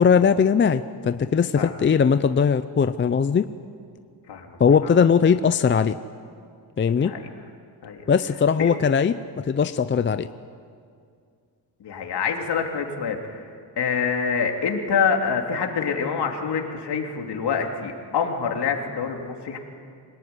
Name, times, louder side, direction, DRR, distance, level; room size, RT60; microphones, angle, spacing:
voice 1, 0.0-3.4 4.6-6.0 6.8-7.1 8.1-9.1 9.4-10.3, left 6 dB, 25° left, 10 dB, 0.6 m, -19 dB
voice 2, 4.3-5.0 6.9-7.2 7.8-8.0 8.6-8.7 11.8-13.5 13.8-19.6, left 6 dB, 65° left, 2 dB, 3.3 m, -26 dB
26.5 x 19.0 x 9.7 m, 2.3 s
cardioid pair, 130°, 44 cm